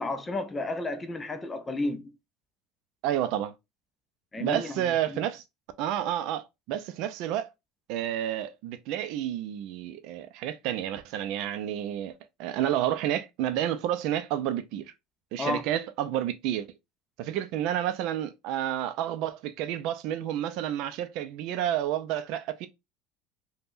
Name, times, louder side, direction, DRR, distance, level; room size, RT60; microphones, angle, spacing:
voice 1, 0.0-2.1 4.3-4.7 5.1-5.2 15.4-15.6, left 2 dB, 20° left, 0.4 m, -32 dB
voice 2, 3.0-3.5 4.4-5.4 5.8-7.5 7.9-12.1 12.4-14.9 15.3-16.7 17.2-22.7, right 11 dB, 65° right, 0.4 m, -30 dB
3.4 x 2.1 x 2.5 m
supercardioid pair, 100°, 0 cm